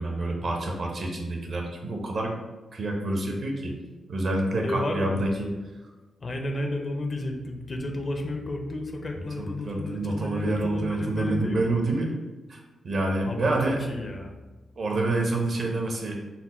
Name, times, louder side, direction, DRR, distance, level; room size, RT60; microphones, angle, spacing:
voice 1, 0.0-2.3 2.7-3.8 4.1-5.5 9.4-12.1 12.5-12.6 12.8-13.8 14.8-16.2, right 2 dB, 50° right, 1 dB, 0.7 m, -27 dB
voice 2, 4.6-5.2 6.2-11.6 13.3-13.5 13.8-14.3, left 2 dB, 35° left, 3 dB, 0.5 m, -32 dB
4.2 x 2.1 x 4.1 m, 1.2 s
wide cardioid pair, 140°, 0 cm